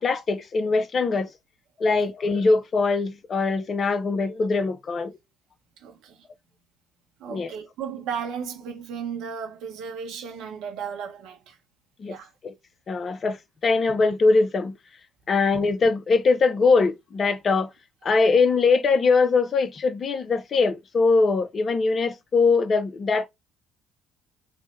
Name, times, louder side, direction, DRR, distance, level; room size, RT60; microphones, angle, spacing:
voice 1, 0.0-1.3 1.8-5.1 7.3-7.5 12.0-12.2 12.4-12.5 12.9-14.8 15.3-17.7 18.0-23.3, left 4 dB, 40° left, 0.5 m, -22 dB
voice 2, 5.8-6.2 7.2-11.6 12.1-12.3, right 7 dB, 65° right, 0.8 m, -35 dB
3.2 x 2.1 x 4.1 m
hypercardioid pair, 55°, 0 cm